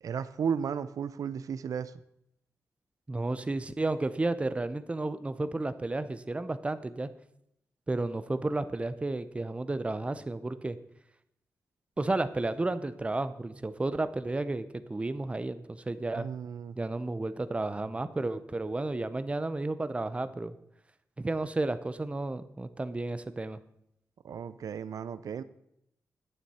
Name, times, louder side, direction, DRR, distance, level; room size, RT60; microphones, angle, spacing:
voice 1, 0.0-1.9 16.1-16.8 24.2-25.4, right 7 dB, 80° right, 15 dB, 0.5 m, -34 dB
voice 2, 3.1-7.1 7.9-10.8 12.0-16.3 16.8-20.6 21.2-23.6, right 2 dB, 20° right, 13 dB, 0.6 m, -32 dB
11.0 x 9.1 x 4.3 m, 0.77 s
wide cardioid pair, 115°, 6 cm